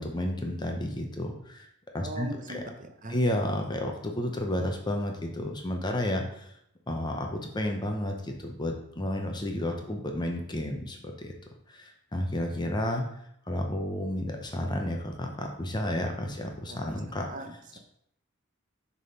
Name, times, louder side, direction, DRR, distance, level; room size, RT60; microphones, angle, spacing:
voice 1, 0.0-1.7 1.9-2.6 3.1-6.5 6.9-11.3 11.7-13.0 13.5-17.3, left 1 dB, 20° left, 2 dB, 0.7 m, -31 dB
voice 2, 2.0-3.2 16.7-17.0 17.3-17.8, right 1 dB, 35° right, 5 dB, 0.7 m, -40 dB
6.2 x 3.6 x 5.4 m, 0.74 s
head